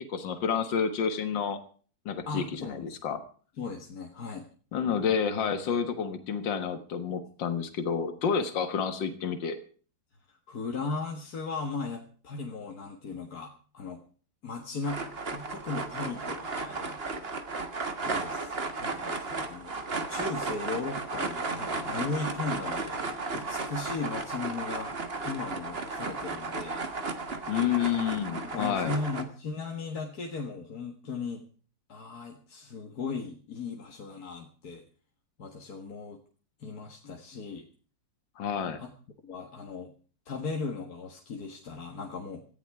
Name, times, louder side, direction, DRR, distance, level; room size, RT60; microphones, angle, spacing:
voice 1, 0.1-1.6 2.1-3.2 4.7-9.6 27.5-28.9 38.4-38.8, left 7 dB, 75° left, 9 dB, 2.2 m, -29 dB
voice 2, 2.3-2.9 3.6-4.5 10.3-14.0 14.4-15.0 15.3-17.0 18.0-19.8 20.1-24.9 25.2-26.8 28.4-31.4 31.9-34.8 35.4-36.2 36.6-37.7 38.8-38.9 39.2-39.9 40.3-42.4, left 4 dB, 55° left, 2 dB, 2.1 m, -37 dB
sound 1, 14.8-29.2, right 3 dB, 35° right, 1.6 m, -34 dB
18.0 x 14.5 x 4.8 m, 0.42 s
omnidirectional pair, 2.0 m